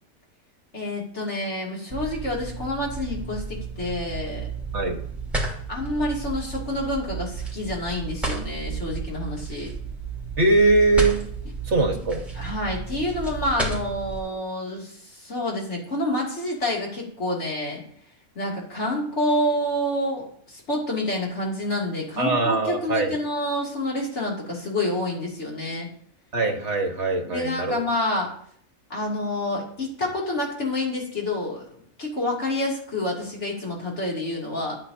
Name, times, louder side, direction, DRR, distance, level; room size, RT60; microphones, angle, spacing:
voice 1, 0.7-4.5 5.7-9.7 12.3-17.8 18.3-25.9 27.2-28.3 28.9-31.7 32.0-34.8, left 1 dB, 55° left, -3 dB, 3.1 m, -28 dB
sound 1, 1.9-14.2, right 4 dB, ahead, 3.3 m, -32 dB
voice 2, 10.4-11.2 11.7-12.2 22.2-23.2 26.3-27.8, right 2 dB, 55° right, 3 dB, 1.8 m, -21 dB
13.5 x 9.6 x 2.8 m, 0.62 s
omnidirectional pair, 1.4 m